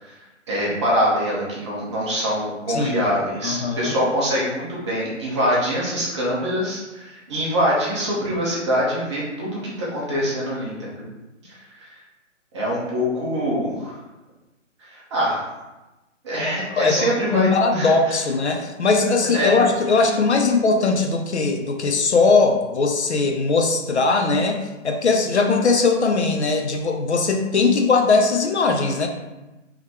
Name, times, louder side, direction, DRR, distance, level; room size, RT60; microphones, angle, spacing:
voice 1, 0.5-11.0 11.4-11.9 12.5-14.0 14.8-15.4 16.2-18.2 19.3-19.6, equal, 25° right, -6 dB, 0.8 m, -24 dB
voice 2, 2.7-3.0 3.4-3.9 16.7-29.1, left 4 dB, 60° left, 3 dB, 0.6 m, -20 dB
3.7 x 3.0 x 3.5 m, 1.0 s
figure-of-eight pair, 145°, 39 cm